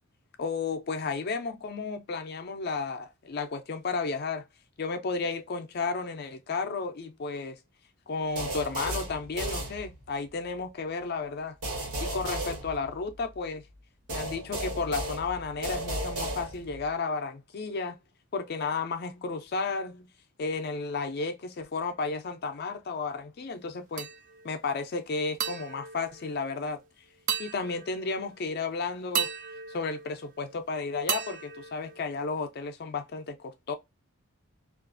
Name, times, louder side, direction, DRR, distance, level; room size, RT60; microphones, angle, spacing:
voice 1, 0.4-4.5 4.8-7.6 8.1-11.6 12.0-13.6 14.1-18.0 18.3-20.1 20.4-24.1 24.4-26.8 27.4-29.3 29.7-33.7, left 4 dB, 45° left, 0.4 m, -33 dB
sound 1, 8.4-10.3 11.6-13.4 14.1-16.9, right 1 dB, 80° right, 1.1 m, -35 dB
sound 2, 24.0-24.6 25.4-26.8 27.3-28.3 29.1-30.6 31.1-32.5, right 7 dB, 35° right, 0.3 m, -35 dB
2.4 x 2.3 x 2.4 m
head